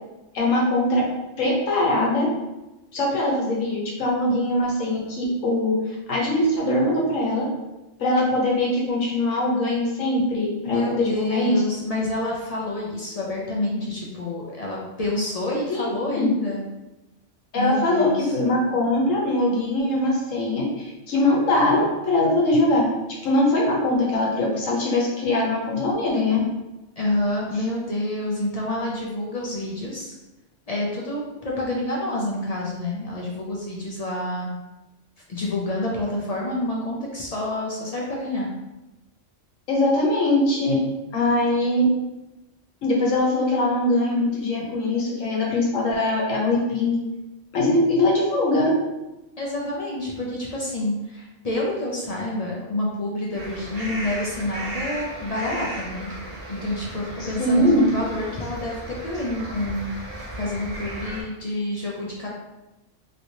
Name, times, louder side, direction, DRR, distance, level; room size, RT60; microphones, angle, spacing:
voice 1, 0.3-1.0 1.4-2.3 2.9-5.8 6.1-7.4 8.0-11.6 15.7-15.8 16.2-16.3 17.5-26.4 39.7-40.8 41.1-41.8 42.8-47.0 47.5-48.7 57.4-57.8, left 1 dB, 85° left, -2 dB, 1.3 m, -22 dB
voice 2, 10.6-16.6 17.5-18.3 27.0-30.1 30.7-34.5 35.3-38.5 49.4-56.1 56.5-59.9 60.3-62.3, left 1 dB, 50° left, -4 dB, 0.5 m, -28 dB
sound 1, 53.3-61.2, right 1 dB, 35° right, 0.7 m, -36 dB
3.1 x 3.0 x 2.7 m, 1.0 s
omnidirectional pair, 1.3 m